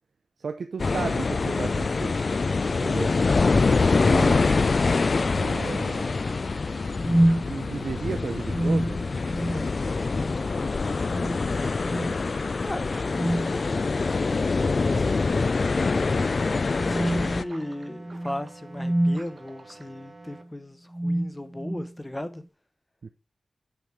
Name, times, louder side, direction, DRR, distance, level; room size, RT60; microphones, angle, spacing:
voice 1, 0.4-2.2 2.7-3.2 4.1-4.5 5.3-6.2 7.5-9.0 23.0-23.1, right 5 dB, 80° right, 0.6 m, -34 dB
sound 1, 0.8-17.4, left 4 dB, 55° left, 0.4 m, -25 dB
sound 2, 2.8-20.4, right 3 dB, 55° right, 1.5 m, -49 dB
sound 3, 3.5-3.7 4.2-4.3 4.9-5.4 7.0-7.5 8.5-9.7 10.1-10.4 11.1-11.5 11.8-12.2 13.1-13.6 14.8-15.3 15.7-15.9 16.7-19.3 20.2-20.5 20.9-21.9, right 1 dB, 15° right, 0.3 m, -28 dB
voice 2, 12.6-13.0 14.9-15.2 16.8-22.4, left 1 dB, 20° left, 0.9 m, -36 dB
6.8 x 6.0 x 4.8 m
wide cardioid pair, 70°, 0 cm